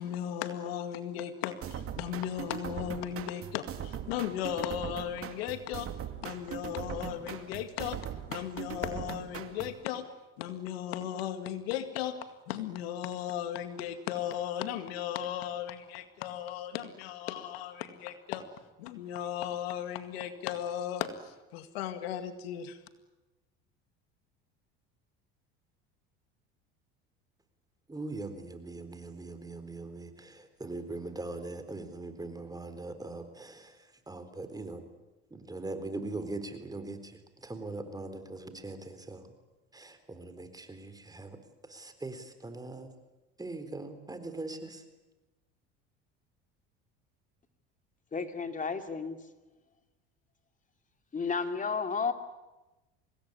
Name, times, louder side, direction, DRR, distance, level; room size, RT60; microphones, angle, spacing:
voice 1, 0.0-5.9 6.2-8.0 8.3-10.0 10.4-12.1 12.5-18.4 18.8-22.8, left 10 dB, 85° left, 10 dB, 2.1 m, -36 dB
sound 1, 1.6-9.8, right 9 dB, 50° right, 2.5 m, -40 dB
voice 2, 27.9-33.8 34.1-34.8 35.3-39.2 39.7-41.4 41.7-42.9 43.4-44.8, right 2 dB, 10° right, 9 dB, 3.9 m, -41 dB
voice 3, 48.1-49.2 51.1-52.1, left 5 dB, 25° left, 7 dB, 2.8 m, -32 dB
25.0 x 19.5 x 10.0 m, 1.1 s
supercardioid pair, 90°, 30 cm